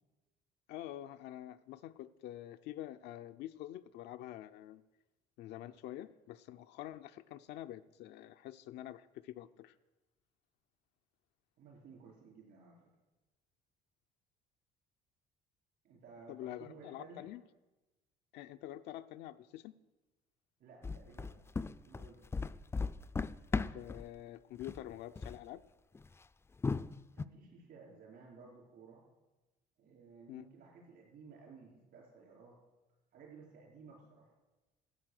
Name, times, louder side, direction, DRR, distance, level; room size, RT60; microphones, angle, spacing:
voice 1, 0.7-4.8 5.4-9.8 16.3-17.4 18.3-19.7 23.5-25.6 30.3-30.5, left 13 dB, 80° left, 9 dB, 0.5 m, -47 dB
voice 2, 11.6-12.8 15.8-17.3 20.6-21.4 21.8-22.3 27.1-29.0 29.8-32.6 33.1-34.3, right 4 dB, 65° right, -3 dB, 4.7 m, -56 dB
sound 1, 20.8-24.0 24.5-24.9 25.1-25.4 25.9-26.1 26.6-27.2, left 4 dB, 15° left, 0.3 m, -36 dB
13.5 x 8.3 x 6.5 m, 1.1 s
cardioid pair, 110°, 17 cm